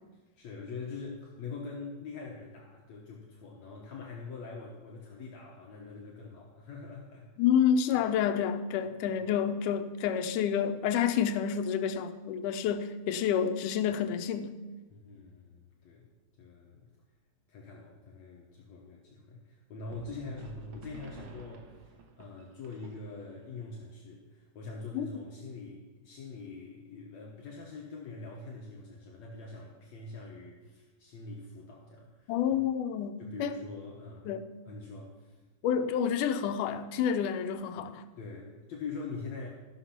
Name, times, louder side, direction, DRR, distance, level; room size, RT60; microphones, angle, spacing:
voice 1, 0.1-7.3 14.9-16.1 16.4-16.8 17.5-32.4 33.2-34.3 34.7-35.4 38.2-39.5, left 4 dB, 65° left, -2 dB, 2.2 m, -44 dB
voice 2, 7.4-14.5 24.9-25.1 32.3-33.6 34.3-34.4 35.6-38.0, left 8 dB, 80° left, 9 dB, 2.1 m, -29 dB
sound 1, 19.9-23.4, right 3 dB, 65° right, 1.9 m, -50 dB
13.5 x 6.4 x 5.8 m, 1.2 s
omnidirectional pair, 3.7 m